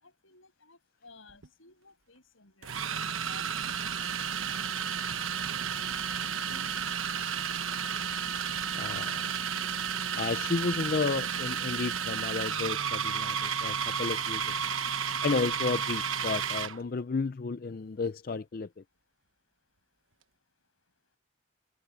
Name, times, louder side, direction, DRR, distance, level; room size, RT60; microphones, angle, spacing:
voice 1, 0.0-3.0 3.3-4.1 6.5-6.9, left 3 dB, 80° left, 7.2 m, -55 dB
sound 1, 1.3-1.5 2.6-16.8, right 7 dB, 90° right, 1.2 m, -32 dB
voice 2, 8.7-9.4 10.1-14.5 15.2-18.8, left 4 dB, 45° left, 0.4 m, -32 dB
head